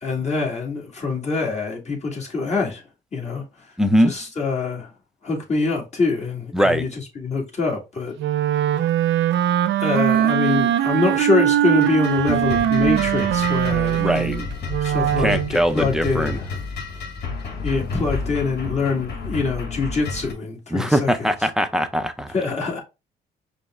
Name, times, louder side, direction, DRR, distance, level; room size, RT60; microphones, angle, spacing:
voice 1, 0.0-2.8 3.1-3.4 4.0-4.9 5.2-8.1 9.8-14.5 14.8-16.5 17.6-21.3 22.3-22.8, left 4 dB, 35° left, 1.9 m, -24 dB
voice 2, 3.8-4.1 6.5-6.8 14.0-14.4 15.2-16.4 20.7-22.3, equal, 5° right, 0.6 m, -21 dB
Wind instrument woodwind instrument, 8.2-15.6, right 11 dB, 70° right, 0.4 m, -21 dB
sound 1, 11.6-20.3, left 4 dB, 55° left, 1.7 m, -31 dB
5.2 x 2.2 x 3.5 m
cardioid pair, 90°, 20 cm